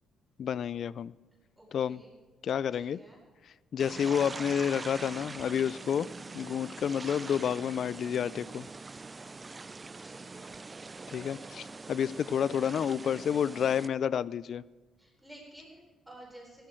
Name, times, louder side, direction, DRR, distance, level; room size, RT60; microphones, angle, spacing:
voice 1, 0.4-1.1 1.7-2.0 2.4-3.0 3.7-6.1 6.3-8.7 11.1-14.6, left 8 dB, 60° left, 21 dB, 0.3 m, -30 dB
voice 2, 1.6-2.1 2.7-3.2 10.0-10.6 15.0-16.7, right 1 dB, 5° right, -3 dB, 4.2 m, -53 dB
sound 1, 3.8-13.9, right 3 dB, 25° right, 0.4 m, -43 dB
15.5 x 13.0 x 4.5 m, 1.3 s
cardioid pair, 90°, 0 cm